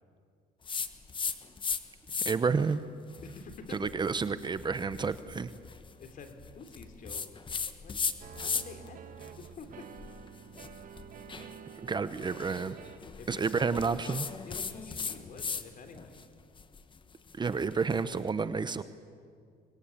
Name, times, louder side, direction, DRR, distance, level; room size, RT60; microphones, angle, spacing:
sound 1, 0.7-1.8 2.1-2.6 3.1-8.9 9.2-15.7 16.0-18.2, left 5 dB, 30° left, 1.4 m, -38 dB
voice 1, 2.2-2.8 3.7-5.5 11.9-12.8 13.3-14.2 17.4-18.8, right 5 dB, 25° right, 13 dB, 0.9 m, -30 dB
voice 2, 3.2-3.9 6.0-7.4 7.8-7.9 8.3-9.0 9.4-9.9 12.1-12.3 13.2-13.7 14.0-16.3, left 4 dB, 50° left, 6 dB, 3.4 m, -48 dB
sound 2, 8.2-13.2, right 8 dB, 55° right, 1.5 m, -49 dB
25.5 x 21.0 x 8.7 m, 2.2 s
cardioid pair, 110°, 17 cm